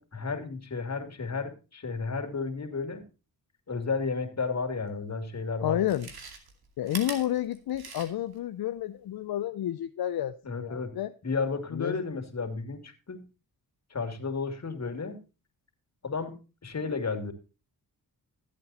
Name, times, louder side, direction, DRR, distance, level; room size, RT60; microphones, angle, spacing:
voice 1, 0.0-3.0 3.7-5.8 10.4-11.0 11.2-13.2 13.9-15.2 16.0-17.3, left 4 dB, 45° left, 2.5 m, -33 dB
Chewing mastication, 5.0-5.1 5.7-8.4 8.8-8.9, right 5 dB, 75° right, 2.5 m, -42 dB
voice 2, 5.6-6.1 6.8-11.1 11.7-12.0, left 12 dB, 70° left, 0.6 m, -30 dB
13.5 x 8.4 x 4.2 m
cardioid pair, 65°, 38 cm